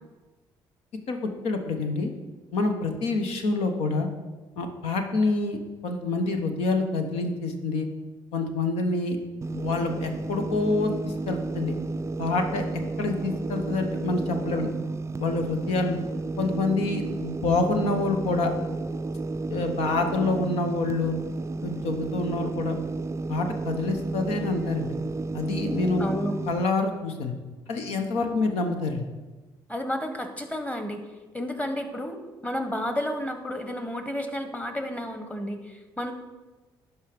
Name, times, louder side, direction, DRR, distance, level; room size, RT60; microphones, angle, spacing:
voice 1, 1.1-2.1 2.5-4.1 4.6-7.9 8.3-9.2 9.5-11.7 12.2-12.7 13.0-14.7 15.2-16.0 16.4-18.5 19.5-21.1 21.6-22.8 23.3-24.9 25.3-26.1 26.5-27.3 27.7-29.1, left 3 dB, 75° left, 5 dB, 1.0 m, -27 dB
sound 1, 9.4-26.6, right 3 dB, 25° right, 0.4 m, -32 dB
voice 2, 26.0-26.3 29.7-31.0 31.3-36.1, left 1 dB, 10° left, 7 dB, 1.3 m, -31 dB
11.0 x 4.7 x 5.0 m, 1.3 s
supercardioid pair, 55°, 11 cm